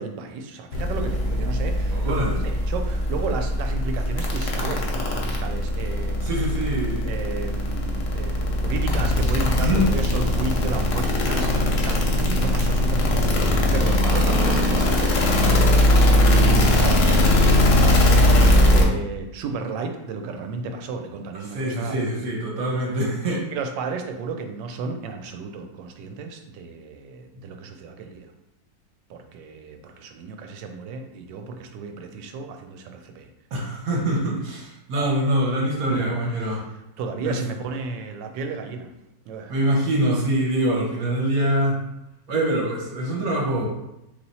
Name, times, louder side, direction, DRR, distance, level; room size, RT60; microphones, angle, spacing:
voice 1, 0.0-6.3 7.0-22.0 22.7-22.8 23.5-28.3 29.1-33.3 35.9-36.1 36.4-36.6 37.0-38.9 39.3-39.5, right 4 dB, 90° right, 5 dB, 1.3 m, -33 dB
sound 1, 0.7-18.8, left 1 dB, 60° left, 0.9 m, -20 dB
voice 2, 2.0-2.4 6.2-7.1 9.6-9.9 14.1-14.2 21.4-23.5 33.5-36.6 37.2-37.4 39.5-41.8 42.3-43.7, right 1 dB, 60° right, -2 dB, 1.1 m, -24 dB
3.3 x 2.9 x 4.0 m, 0.89 s
omnidirectional pair, 1.9 m